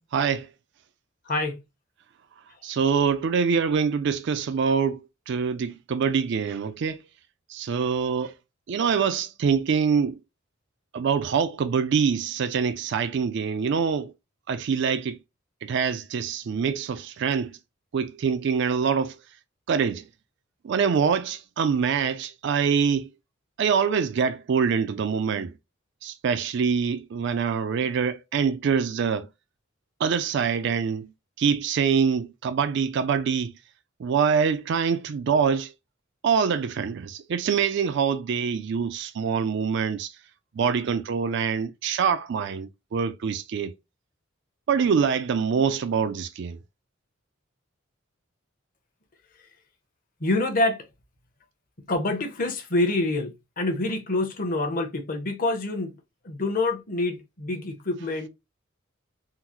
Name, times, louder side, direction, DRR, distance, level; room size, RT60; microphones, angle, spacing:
voice 1, 0.1-0.5 2.6-7.0 7.5-8.3 8.7-10.2 10.9-14.1 14.5-15.2 15.6-17.6 17.9-19.2 19.7-20.1 20.6-23.1 23.6-25.5 26.0-29.3 30.0-31.1 31.4-33.5 34.0-35.7 36.2-40.1 40.5-43.7 44.7-46.6, right 6 dB, 60° right, 0.4 m, -25 dB
voice 2, 1.3-1.6 50.2-50.9 51.8-56.0 56.2-58.3, left 2 dB, 45° left, 0.8 m, -26 dB
3.8 x 2.0 x 2.8 m
head